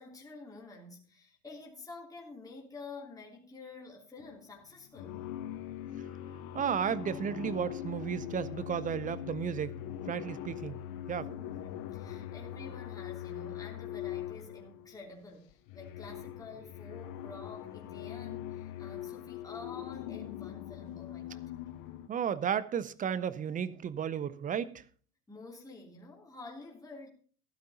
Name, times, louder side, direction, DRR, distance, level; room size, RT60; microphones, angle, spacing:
voice 1, 0.0-5.2 6.3-6.6 11.3-21.4 25.3-27.1, left 3 dB, 10° left, 3.1 m, -49 dB
sound 1, 4.2-4.5 4.9-15.0 15.5-22.1, left 11 dB, 45° left, 1.0 m, -42 dB
voice 2, 6.5-10.8 11.1-11.3 22.1-24.8, right 8 dB, 20° right, 0.5 m, -33 dB
15.0 x 12.0 x 2.8 m
hypercardioid pair, 90°, 44 cm